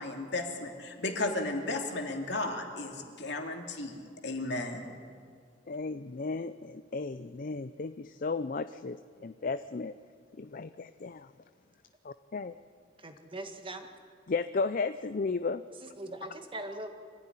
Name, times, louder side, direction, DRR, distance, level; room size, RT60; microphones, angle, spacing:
voice 1, 0.0-4.8, left 2 dB, 60° left, 3 dB, 2.7 m, -34 dB
voice 2, 5.7-9.9 10.4-11.3 12.0-12.5 14.3-15.6, left 4 dB, 45° left, 12 dB, 0.5 m, -34 dB
voice 3, 13.0-13.9 15.8-16.9, right 2 dB, 25° right, 5 dB, 1.6 m, -41 dB
24.5 x 15.0 x 9.9 m, 2.2 s
head